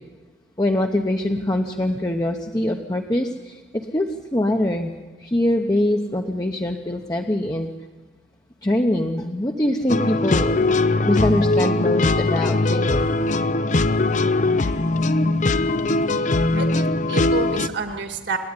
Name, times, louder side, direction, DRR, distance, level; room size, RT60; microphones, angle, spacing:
voice 1, 0.6-4.9 5.2-7.7 8.6-10.6 11.1-13.1, left 1 dB, 20° left, 2 dB, 0.8 m, -23 dB
sound 1, 9.9-17.7, left 2 dB, 40° left, 0.5 m, -20 dB
voice 2, 16.3-18.4, right 3 dB, 65° right, 6 dB, 2.1 m, -29 dB
27.5 x 10.0 x 9.9 m, 1.3 s
head